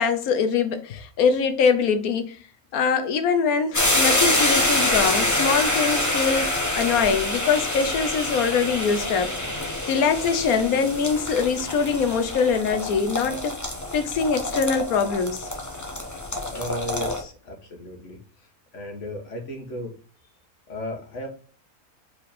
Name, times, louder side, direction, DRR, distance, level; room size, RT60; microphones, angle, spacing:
voice 1, 0.0-2.4 2.7-9.3 9.9-13.5 13.9-15.5, left 5 dB, 75° left, 1.3 m, -23 dB
sound 1, 3.7-17.2, left 1 dB, 15° left, 0.9 m, -26 dB
voice 2, 16.5-18.2 18.7-19.9 20.7-21.3, equal, 55° left, 1.7 m, -34 dB
5.1 x 4.4 x 5.0 m
omnidirectional pair, 1.6 m